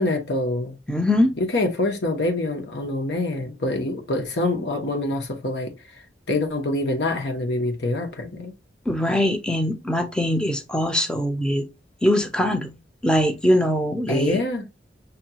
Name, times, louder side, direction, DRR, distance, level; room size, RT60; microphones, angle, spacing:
voice 1, 0.0-0.8 1.4-5.7 6.3-8.5 14.1-14.7, left 2 dB, 75° left, 1.0 m, -25 dB
voice 2, 0.9-1.4 8.9-11.7 12.0-12.8 13.0-14.4, left 1 dB, 5° left, 0.5 m, -22 dB
5.4 x 2.3 x 2.8 m
head